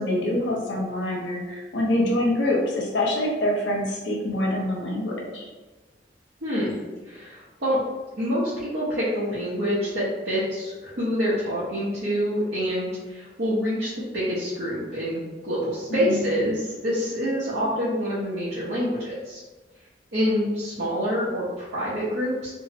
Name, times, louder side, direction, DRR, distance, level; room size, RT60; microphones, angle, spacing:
voice 1, 0.0-5.5 15.9-16.2, left 1 dB, 80° left, -2 dB, 0.6 m, -25 dB
voice 2, 6.4-6.8 7.0-7.8 8.2-19.4 20.1-22.5, equal, 60° right, -11 dB, 0.7 m, -26 dB
2.6 x 2.0 x 2.6 m, 1.2 s
head